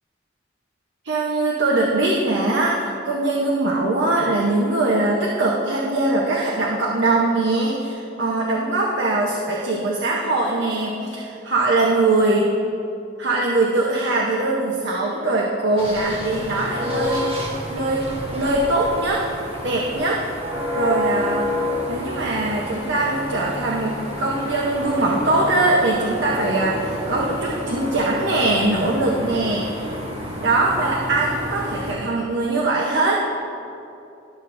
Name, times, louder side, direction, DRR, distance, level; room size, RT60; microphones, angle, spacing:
voice 1, 1.0-12.6 13.2-19.2 19.6-20.2 20.7-21.5 21.9-29.9 30.4-33.2, right 2 dB, 70° right, -3 dB, 0.8 m, -22 dB
sound 1, 15.8-31.9, left 1 dB, 30° right, 1.5 m, -29 dB
12.0 x 6.8 x 2.6 m, 2.6 s
head